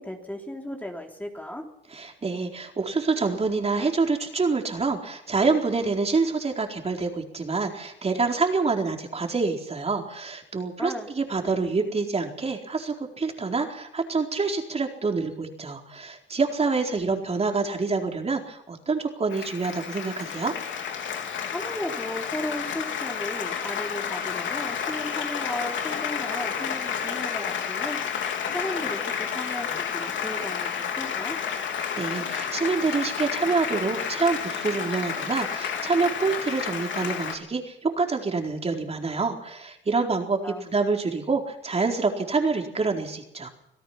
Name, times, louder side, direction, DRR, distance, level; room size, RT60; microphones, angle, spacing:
voice 1, 0.0-1.7 10.8-11.1 21.5-28.0 28.5-31.4 40.4-40.6, left 1 dB, 10° left, 1 dB, 3.4 m, -35 dB
voice 2, 1.9-20.5 31.7-43.5, right 4 dB, 30° right, 2 dB, 4.4 m, -27 dB
Applause, 19.3-37.4, left 7 dB, 70° left, 3.4 m, -31 dB
26.5 x 17.0 x 6.0 m, 0.81 s
cardioid pair, 90°, 20 cm